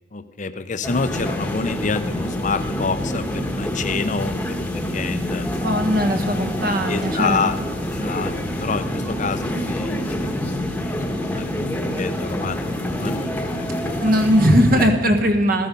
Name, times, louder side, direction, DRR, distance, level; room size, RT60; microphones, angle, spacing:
voice 1, 0.1-5.4 6.0-6.1 6.8-8.3 8.6-10.3 10.8-14.1, left 4 dB, 40° left, 11 dB, 0.7 m, -28 dB
sound 1, 0.8-14.8, left 1 dB, 10° left, 1.2 m, -26 dB
voice 2, 5.6-7.4 14.0-15.7, equal, 50° right, 6 dB, 1.5 m, -19 dB
15.0 x 13.5 x 5.4 m, 1.4 s
head